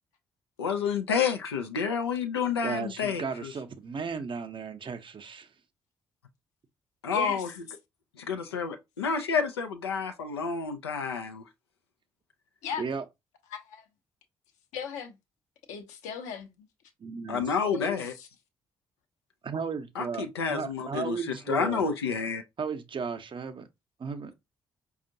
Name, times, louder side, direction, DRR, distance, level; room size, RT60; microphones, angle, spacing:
voice 1, 0.6-3.5 7.0-7.5 8.2-11.4 17.3-18.1 20.0-21.2 21.5-22.4, left 6 dB, 90° left, 0.4 m, -29 dB
voice 2, 2.6-5.5 12.8-13.0 17.0-17.6 19.4-21.8 22.6-23.7 24.0-24.3, right 5 dB, 40° right, 0.6 m, -35 dB
voice 3, 7.1-7.4 12.6-12.8 13.5-13.8 14.7-15.2 15.7-16.7 17.6-18.3, left 7 dB, 70° left, 0.8 m, -37 dB
5.0 x 2.4 x 2.6 m
figure-of-eight pair, 40°, 13 cm